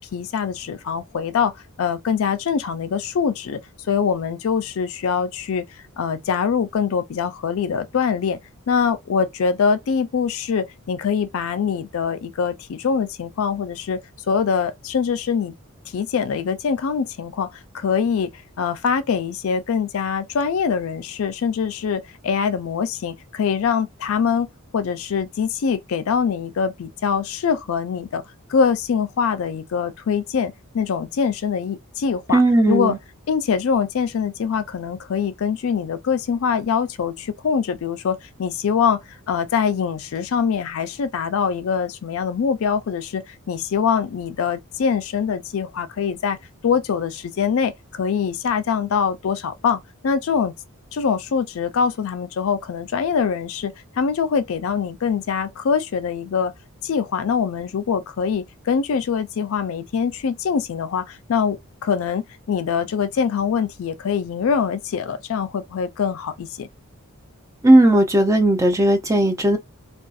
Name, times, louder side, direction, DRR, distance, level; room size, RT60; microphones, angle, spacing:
voice 1, 0.0-1.5 1.8-3.6 3.9-5.6 6.0-8.4 8.7-14.0 14.3-15.5 15.9-28.2 28.5-32.4 32.7-33.0 33.3-39.0 39.3-46.4 46.6-50.5 50.9-56.5 56.8-66.7, left 6 dB, 65° left, 0.4 m, -23 dB
voice 2, 32.3-33.0 67.6-69.6, right 1 dB, 15° right, 0.4 m, -16 dB
2.6 x 2.3 x 2.4 m
head